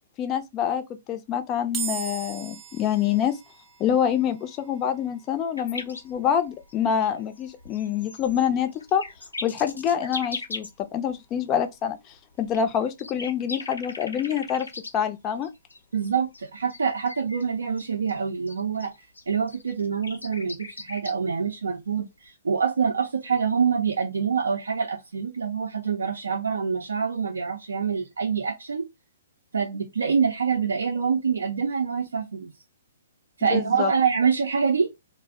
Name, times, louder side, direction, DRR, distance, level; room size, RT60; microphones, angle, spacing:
voice 1, 0.2-3.4 3.8-9.0 9.4-12.0 12.4-14.7 14.9-15.5 33.4-33.9, left 9 dB, 25° left, 0.4 m, -26 dB
sound 1, 1.7-15.1, right 9 dB, 20° right, 0.7 m, -44 dB
sound 2, 5.6-10.8 11.1-11.2 11.9-14.9 15.4-17.5 17.8-21.1 22.3-22.4, left 3 dB, 85° left, 0.6 m, -39 dB
voice 2, 15.9-18.9 19.3-28.9 29.5-32.5 33.4-34.9, right 6 dB, 75° right, 0.5 m, -26 dB
2.4 x 2.0 x 3.5 m
figure-of-eight pair, 125°, 0 cm